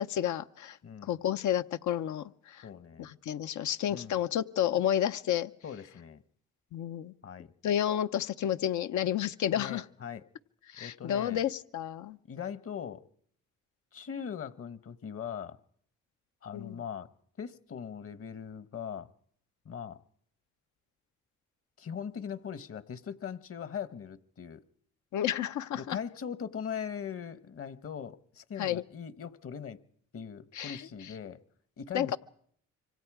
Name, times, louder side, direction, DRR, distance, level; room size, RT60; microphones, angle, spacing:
voice 1, 0.0-0.8 1.0-2.7 3.0-5.5 6.7-7.1 7.6-9.8 10.7-12.2 16.5-16.8 25.1-26.0 28.6-28.8 30.5-30.9 31.9-32.2, left 10 dB, 75° left, 0.9 m, -31 dB
voice 2, 0.8-1.2 2.6-3.1 3.9-4.2 5.6-6.2 7.2-7.5 9.5-10.2 10.8-11.4 12.3-13.0 13.9-15.6 16.4-17.1 17.4-19.1 19.6-20.0 21.8-24.6 25.7-29.8 30.1-31.4 31.8-32.2, left 7 dB, 50° left, 1.2 m, -40 dB
26.5 x 25.0 x 4.9 m
cardioid pair, 90°, 30 cm